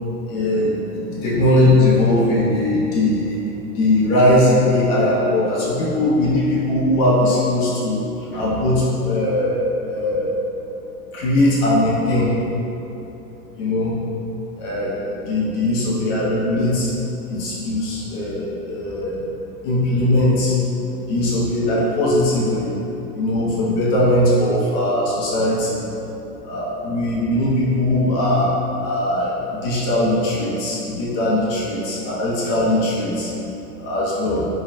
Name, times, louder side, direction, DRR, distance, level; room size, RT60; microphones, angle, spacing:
voice 1, 0.3-3.4 3.7-8.0 8.3-9.6 9.9-10.3 11.1-12.3 13.6-14.0 14.6-16.9 17.3-19.2 19.6-20.6 21.1-22.7 23.1-25.8 26.4-28.5 28.8-33.3 33.8-34.5, left 1 dB, 40° left, -6 dB, 0.9 m, -19 dB
3.9 x 3.2 x 2.6 m, 3.0 s
hypercardioid pair, 110°, 47 cm